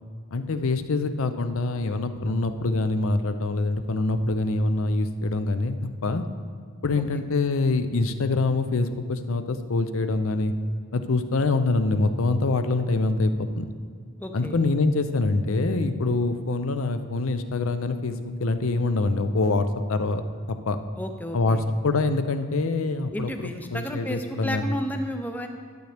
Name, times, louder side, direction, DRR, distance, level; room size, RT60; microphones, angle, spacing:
voice 1, 0.3-6.2 6.8-10.5 10.9-13.7 14.3-20.2 20.5-20.8 21.3-21.6 21.8-24.7, left 3 dB, 75° left, 9 dB, 0.6 m, -25 dB
voice 2, 14.2-14.6 21.0-21.6 23.1-25.5, equal, 10° left, 5 dB, 0.5 m, -32 dB
12.0 x 7.7 x 3.4 m, 2.1 s
head